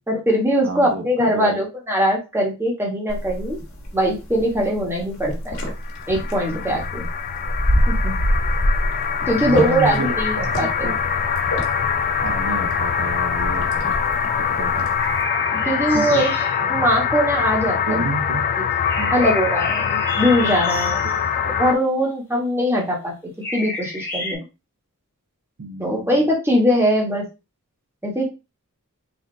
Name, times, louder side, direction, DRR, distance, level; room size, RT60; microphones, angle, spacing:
voice 1, 0.1-3.6 3.9-5.6 6.1-7.1 7.9-8.1 9.3-10.9 15.5-16.3 16.7-18.0 19.1-21.0 21.6-24.4 25.8-27.2 28.0-28.2, equal, 10° right, 1.2 m, -21 dB
voice 2, 0.6-1.6 9.4-11.0 12.2-13.9 14.4-14.9 15.9-16.3 16.6-16.9 17.8-18.4 19.0-19.2 21.0-21.2 25.6-26.3, right 3 dB, 60° right, 0.6 m, -30 dB
sound 1, 3.1-15.2, equal, 70° left, 1.5 m, -27 dB
sound 2, 5.8-21.7, left 7 dB, 40° left, 0.3 m, -24 dB
sound 3, 15.0-16.7 18.8-21.2 23.4-24.4, left 2 dB, 10° left, 0.9 m, -30 dB
4.2 x 2.8 x 3.3 m
head